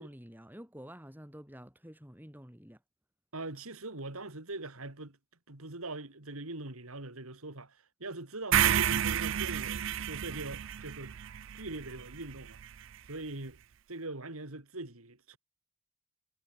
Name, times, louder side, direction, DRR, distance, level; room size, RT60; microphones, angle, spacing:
voice 1, 0.0-2.8, equal, 10° right, 4.5 m, -49 dB
voice 2, 3.3-5.2 5.5-11.2 11.5-12.6 13.1-13.6 13.9-15.4, right 2 dB, 75° right, 2.9 m, -42 dB
sound 1, 8.5-12.7, right 10 dB, 60° right, 0.4 m, -30 dB
head